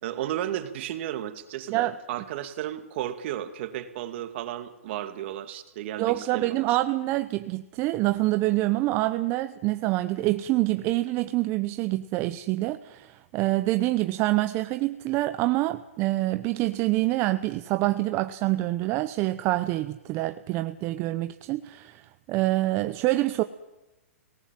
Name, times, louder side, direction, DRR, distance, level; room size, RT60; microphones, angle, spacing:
voice 1, 0.0-6.8, right 12 dB, 55° right, 9 dB, 2.3 m, -34 dB
voice 2, 6.0-22.0 22.3-23.4, right 17 dB, 35° right, 10 dB, 0.8 m, -26 dB
26.0 x 19.0 x 7.6 m, 1.0 s
hypercardioid pair, 130°, 8 cm